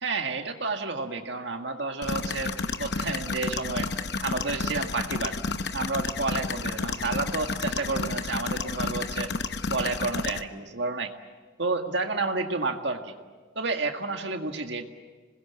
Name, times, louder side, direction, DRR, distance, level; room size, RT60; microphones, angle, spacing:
voice 1, 0.0-3.9 4.2-5.4 5.7-9.3 9.7-11.1 11.6-13.1 13.6-14.8, right 3 dB, 60° right, 5 dB, 1.9 m, -30 dB
sound 1, 2.0-10.4, left 3 dB, 55° left, 0.9 m, -31 dB
27.0 x 20.5 x 8.8 m, 1.5 s
head